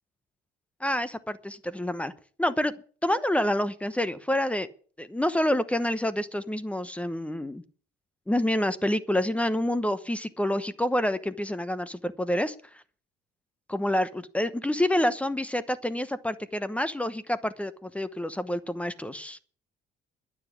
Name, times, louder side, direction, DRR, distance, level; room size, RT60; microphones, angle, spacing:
voice 1, 0.8-2.1 2.4-2.7 3.0-4.7 5.0-7.6 8.3-12.8 13.7-19.4, left 1 dB, 5° left, 14 dB, 0.9 m, -28 dB
12.0 x 7.2 x 9.4 m, 0.43 s
cardioid pair, 110°, 17 cm